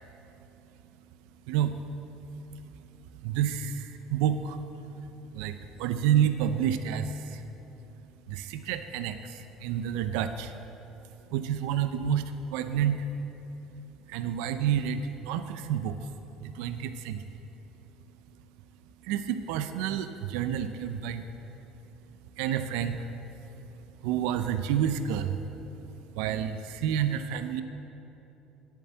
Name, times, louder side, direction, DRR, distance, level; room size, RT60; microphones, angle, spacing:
voice 1, 1.5-1.8 3.2-4.6 5.3-7.4 8.3-10.5 11.3-13.0 14.1-16.1 16.4-17.2 19.0-21.3 22.4-23.1 24.0-25.4 26.1-27.6, right 9 dB, 80° right, 9 dB, 0.5 m, -29 dB
10.0 x 8.4 x 7.7 m, 3.0 s
supercardioid pair, 85°, 0 cm